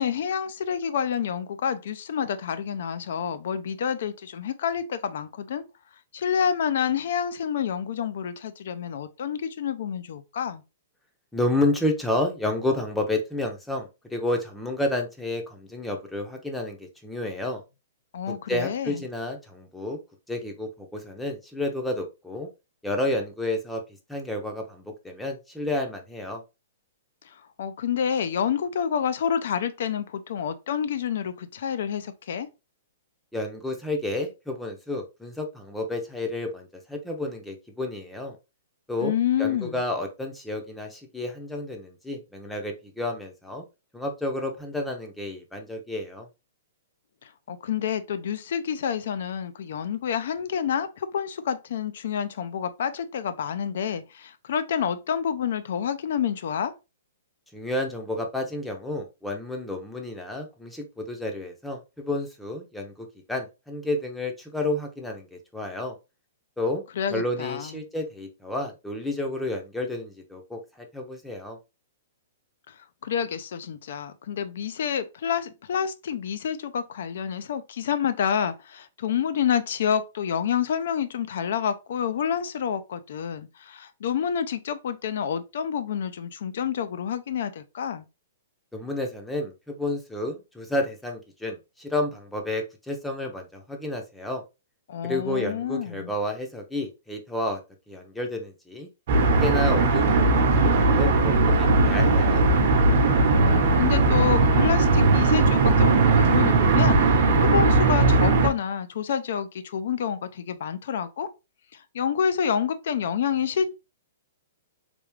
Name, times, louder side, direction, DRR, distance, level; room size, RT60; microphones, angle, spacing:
voice 1, 0.0-5.6 6.1-10.6 18.1-19.0 27.6-32.5 39.0-39.8 47.5-56.7 67.0-67.7 73.0-88.1 94.9-96.1 103.3-111.3 111.7-113.7, left 8 dB, 65° left, 0.5 m, -28 dB
voice 2, 11.3-17.6 18.3-20.0 20.3-22.5 22.8-23.8 24.1-26.4 33.3-38.4 38.9-43.6 43.9-46.3 57.5-66.0 66.6-66.8 67.1-71.6 88.7-94.4 95.0-97.6 97.9-98.9 99.2-102.4, left 1 dB, 5° left, 0.6 m, -30 dB
sound 1, 99.1-108.5, right 3 dB, 55° right, 0.9 m, -19 dB
3.4 x 2.4 x 3.2 m
hypercardioid pair, 145°, 0 cm